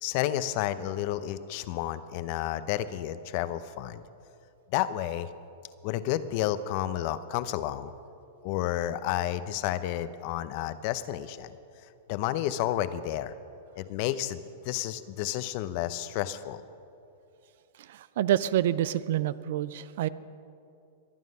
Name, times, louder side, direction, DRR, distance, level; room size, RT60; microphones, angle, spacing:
voice 1, 0.0-4.0 4.7-5.3 5.8-7.9 8.4-11.5 12.1-13.3 13.8-16.6, left 13 dB, 50° left, 13 dB, 0.8 m, -31 dB
voice 2, 17.9-20.1, right 12 dB, 65° right, 17 dB, 0.5 m, -27 dB
23.5 x 9.3 x 5.4 m, 2.6 s
hypercardioid pair, 110°, 0 cm